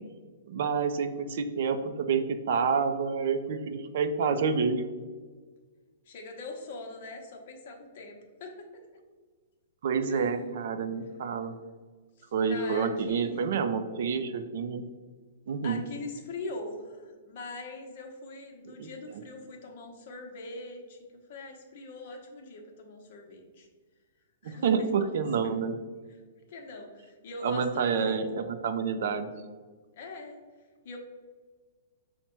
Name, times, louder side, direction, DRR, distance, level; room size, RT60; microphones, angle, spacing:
voice 1, 0.5-4.8 9.8-11.5 12.3-14.8 15.5-15.8 18.8-18.9 24.4-25.7 27.4-29.3, right 5 dB, 55° right, 8 dB, 0.4 m, -28 dB
voice 2, 6.0-8.7 10.1-10.4 12.2-13.4 15.6-23.7 24.4-25.2 25.4-25.5 26.5-28.2 30.0-30.4 30.8-31.0, left 2 dB, 45° left, 2 dB, 0.8 m, -42 dB
5.7 x 2.1 x 4.4 m, 1.5 s
hypercardioid pair, 170°, 0 cm